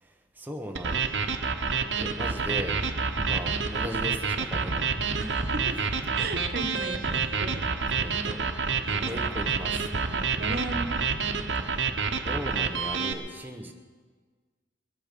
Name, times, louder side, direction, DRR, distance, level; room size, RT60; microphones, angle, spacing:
voice 1, 0.0-1.1 2.0-2.8 3.2-5.0 5.7-5.9 8.0-8.4 9.0-9.9 12.2-13.7, equal, 10° right, 1 dB, 1.0 m, -37 dB
sound 1, 0.8-13.1, right 5 dB, 75° right, 1.0 m, -28 dB
sound 2, 2.3-11.8, right 1 dB, 45° right, 0.9 m, -38 dB
voice 2, 5.2-5.8 6.1-7.7 8.8-9.2 10.1-11.0, right 2 dB, 60° right, 5 dB, 1.2 m, -36 dB
21.5 x 8.7 x 6.7 m, 1.5 s
head